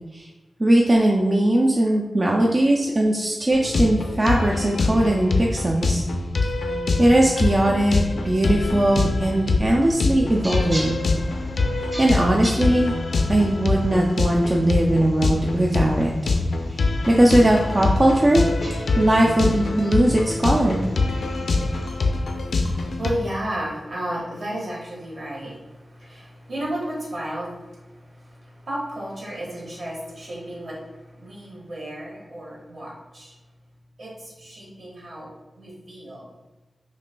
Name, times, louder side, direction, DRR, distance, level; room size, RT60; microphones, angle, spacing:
voice 1, 0.6-6.0 7.0-11.0 12.0-12.9 13.3-16.1 16.7-18.5 19.0-20.8, right 1 dB, 30° right, -1 dB, 0.4 m, -19 dB
sound 1, 3.5-23.1, left 3 dB, 75° left, 0.4 m, -24 dB
sound 2, 10.2-22.1, equal, 10° right, 0.9 m, -40 dB
voice 2, 21.6-33.3 34.0-35.3 35.6-36.3, right 1 dB, 60° right, -5 dB, 1.5 m, -34 dB
6.0 x 2.5 x 2.2 m, 1.2 s
wide cardioid pair, 115°, 0 cm